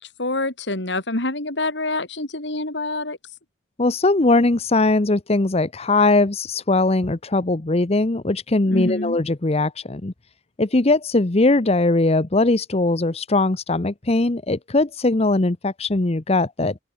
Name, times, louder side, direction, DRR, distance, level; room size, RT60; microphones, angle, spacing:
voice 1, 0.0-3.2 8.6-9.2, left 2 dB, 90° left, 5.0 m, -26 dB
voice 2, 3.8-10.1 10.6-16.8, left 2 dB, 35° left, 0.9 m, -20 dB
open air
head